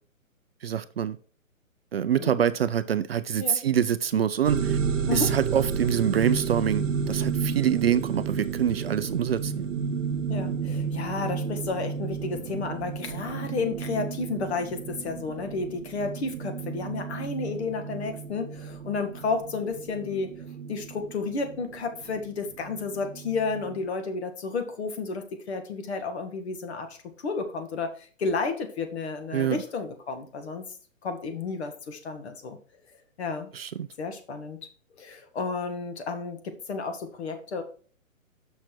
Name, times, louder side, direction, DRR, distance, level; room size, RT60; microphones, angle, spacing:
voice 1, 0.6-1.2 1.9-4.8 5.1-9.7 29.3-29.6 33.5-33.9, right 9 dB, 50° right, 0.5 m, -25 dB
sound 1, 4.4-23.8, right 6 dB, 65° right, 1.0 m, -32 dB
voice 2, 10.3-30.7 31.0-32.6 33.2-33.5 34.0-34.6 35.0-37.6, left 4 dB, 50° left, 1.8 m, -32 dB
6.5 x 5.9 x 4.5 m
hypercardioid pair, 150°, 41 cm